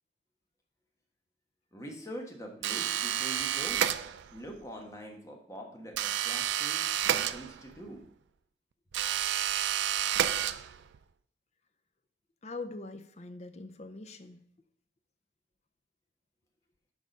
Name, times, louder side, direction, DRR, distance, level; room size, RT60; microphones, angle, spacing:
voice 1, 1.7-3.8 4.3-5.9 6.2-8.0, equal, 15° left, 1 dB, 1.2 m, -44 dB
sound 1, 2.6-4.4 5.9-7.9 8.9-11.0, right 11 dB, 75° right, 0.3 m, -30 dB
voice 2, 12.4-14.4, left 3 dB, 35° left, 10 dB, 0.5 m, -42 dB
6.4 x 4.8 x 5.3 m, 0.64 s
head